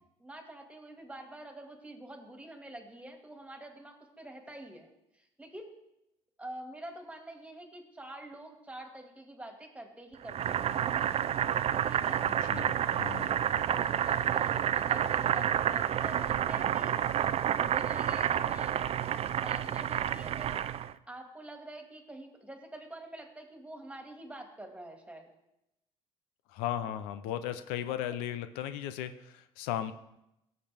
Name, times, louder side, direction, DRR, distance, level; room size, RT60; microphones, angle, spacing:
voice 1, 0.2-4.9 5.1-5.7 6.4-10.8 11.8-12.2 12.5-17.0 17.5-18.8 19.4-20.6 21.1-25.3, right 1 dB, 10° right, 3 dB, 2.1 m, -47 dB
Boiling, 10.3-20.9, right 10 dB, 45° right, 0.4 m, -29 dB
voice 2, 12.2-13.3 26.5-29.9, left 11 dB, 80° left, 11 dB, 0.6 m, -36 dB
16.0 x 6.7 x 3.5 m, 0.87 s
supercardioid pair, 80°, 15 cm